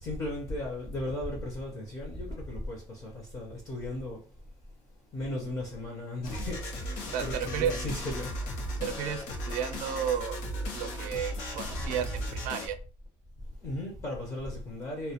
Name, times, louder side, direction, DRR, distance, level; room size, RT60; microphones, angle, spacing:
voice 1, 0.0-4.2 5.1-8.3 11.8-11.9 13.6-15.1, left 1 dB, 25° left, 0.5 m, -36 dB
sound 1, 6.2-12.7, equal, 85° left, 0.6 m, -36 dB
voice 2, 7.1-7.8 8.8-10.4 10.7-12.8, right 9 dB, 75° right, 0.4 m, -33 dB
2.2 x 2.1 x 2.7 m
cardioid pair, 160°, 13 cm